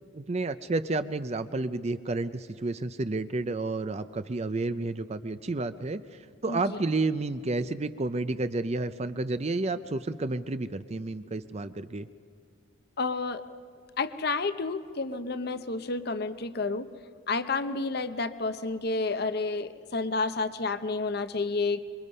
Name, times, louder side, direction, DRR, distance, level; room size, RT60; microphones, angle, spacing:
voice 1, 0.1-12.1, right 2 dB, 35° right, 11 dB, 0.5 m, -31 dB
voice 2, 6.5-6.8 13.0-13.4 14.0-16.9 17.3-21.8, left 3 dB, 55° left, 11 dB, 0.8 m, -30 dB
26.5 x 23.5 x 5.5 m, 2.3 s
head